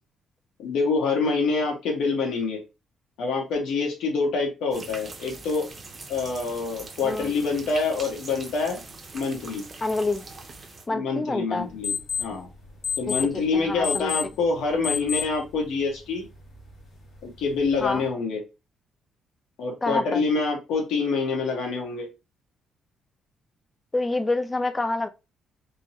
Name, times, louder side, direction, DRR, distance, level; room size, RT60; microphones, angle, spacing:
voice 1, 0.6-2.6 3.2-5.7 6.1-8.8 9.1-9.6 10.9-12.5 13.0-16.3 17.2-18.4 19.6-22.1, left 4 dB, 90° left, 1.4 m, -26 dB
sound 1, 4.7-10.9, right 3 dB, 25° right, 0.6 m, -42 dB
voice 2, 9.8-10.2 10.9-11.7 13.1-13.2 13.5-14.1 17.8-18.1 19.8-20.2 23.9-25.1, left 2 dB, 15° left, 0.4 m, -27 dB
sound 2, 11.6-18.1, left 7 dB, 45° left, 1.5 m, -34 dB
3.7 x 2.8 x 2.8 m
cardioid pair, 160°, 0 cm